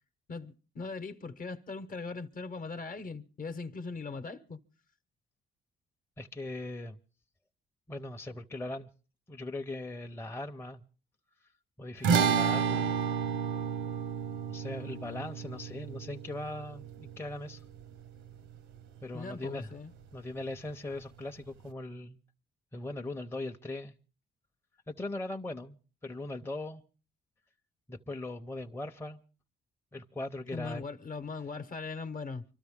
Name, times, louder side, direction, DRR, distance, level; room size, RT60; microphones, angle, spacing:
voice 1, 0.3-4.6 19.1-19.9 30.5-32.4, left 4 dB, 45° left, 1.0 m, -40 dB
voice 2, 6.2-7.0 7.9-8.9 9.3-10.8 11.8-13.0 14.5-17.6 19.0-19.7 20.1-22.2 22.7-24.0 24.9-25.8 26.0-26.8 27.9-29.2 29.9-30.8, left 2 dB, 10° left, 0.7 m, -39 dB
sound 1, 12.0-18.6, right 7 dB, 85° right, 0.9 m, -31 dB
25.0 x 13.0 x 3.6 m
cardioid pair, 90°, 20 cm